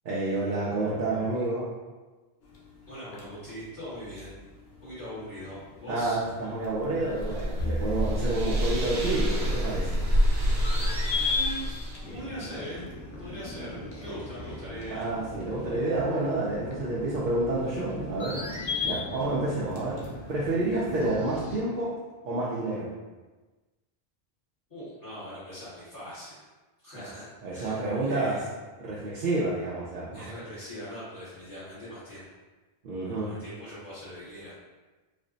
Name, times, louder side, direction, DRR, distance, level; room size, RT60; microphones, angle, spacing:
voice 1, 0.0-1.7 5.9-10.0 14.9-20.0 20.3-21.9 22.2-22.9 26.9-27.1 27.4-28.4 28.8-30.3 32.8-33.3, right 2 dB, 60° right, -7 dB, 0.7 m, -29 dB
sound 1, 2.4-21.1, left 4 dB, 70° left, 0.9 m, -39 dB
voice 2, 2.9-4.4 4.8-6.2 11.3-11.7 12.1-12.9 13.2-13.7 14.0-15.0 15.6-15.9 24.7-26.4 26.8-28.4 30.1-32.3 33.2-34.6, equal, 40° left, -13 dB, 1.5 m, -41 dB
sound 2, 6.7-12.1, equal, 90° right, 0.9 m, -27 dB
sound 3, 12.0-21.6, left 1 dB, ahead, 0.7 m, -42 dB
3.4 x 2.1 x 3.8 m, 1.2 s
omnidirectional pair, 1.0 m